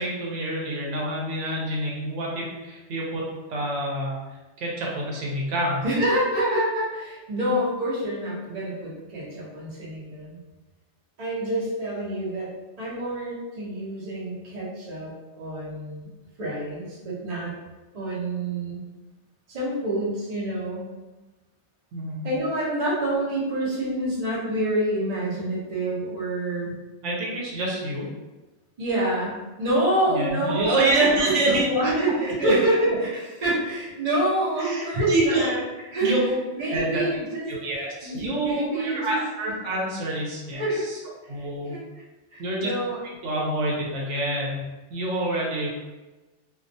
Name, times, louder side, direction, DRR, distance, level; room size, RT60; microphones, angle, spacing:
voice 1, 0.0-4.2 4.6-5.8 21.9-22.3 27.0-28.1 30.1-31.6 32.4-32.5 32.9-33.0 34.6-35.5 36.0-36.3 36.7-37.0 37.5-40.6 41.3-41.7 42.4-42.7 43.2-44.6 44.9-45.7, right 1 dB, 80° right, -3 dB, 0.9 m, -27 dB
voice 2, 5.8-10.4 11.2-12.5 12.8-16.1 16.4-17.5 17.9-18.8 19.5-20.8 22.2-26.7 28.8-35.6 35.9-36.2 36.5-37.5 37.7-39.2 40.5-41.1 41.4-41.8 42.3-43.0, right 1 dB, 40° right, -6 dB, 0.7 m, -27 dB
2.3 x 2.2 x 2.5 m, 1.2 s
omnidirectional pair, 1.2 m